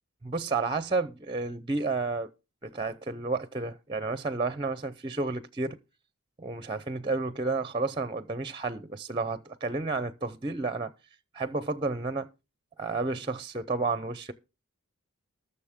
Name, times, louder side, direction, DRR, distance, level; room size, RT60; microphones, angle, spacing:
voice 1, 0.2-2.3 2.6-5.8 6.4-10.9 11.3-12.3 12.8-14.3, right 3 dB, 20° right, 0.6 m, -31 dB
20.5 x 6.9 x 3.6 m
head